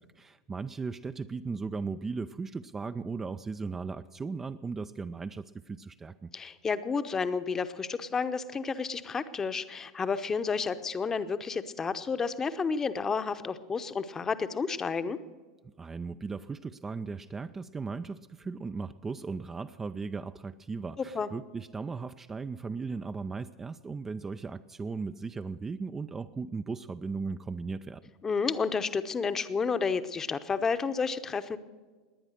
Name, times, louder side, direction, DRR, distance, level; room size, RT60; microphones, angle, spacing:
voice 1, 0.2-6.3 15.6-28.0, right 4 dB, 15° right, 10 dB, 0.4 m, -37 dB
voice 2, 6.3-15.2 21.1-21.3 28.2-31.6, left 5 dB, 20° left, 12 dB, 0.9 m, -31 dB
19.0 x 9.8 x 6.5 m, 1.4 s
figure-of-eight pair, 85°, 2 cm